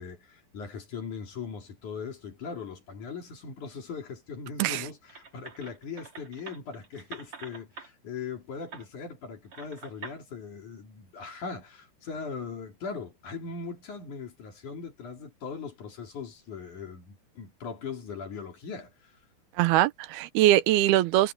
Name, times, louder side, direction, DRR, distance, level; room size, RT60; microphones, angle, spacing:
voice 1, 0.0-19.2, left 5 dB, 50° left, 4.2 m, -40 dB
sound 1, 5.1-7.9 8.7-8.9 9.5-10.2, right 5 dB, 35° right, 4.0 m, -45 dB
voice 2, 19.6-21.3, right 14 dB, 85° right, 2.7 m, -22 dB
omnidirectional pair, 4.5 m